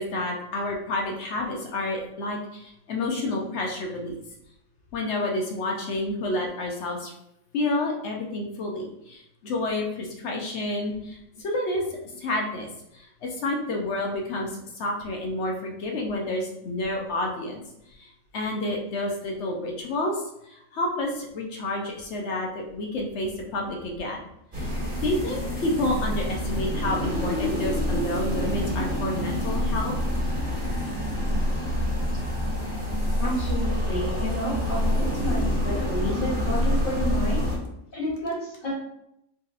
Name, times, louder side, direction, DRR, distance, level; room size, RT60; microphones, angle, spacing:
voice 1, 0.0-4.2 4.9-7.1 7.5-12.7 12.9-17.6 18.0-24.2 24.6-24.7 25.0-29.9, left 1 dB, 65° left, 0 dB, 0.8 m, -29 dB
sound 1, 24.5-37.6, equal, 40° right, 1.8 m, -27 dB
voice 2, 33.2-37.4 37.9-38.7, equal, 45° left, -5 dB, 1.1 m, -30 dB
3.9 x 2.8 x 2.4 m, 0.81 s
omnidirectional pair, 1.4 m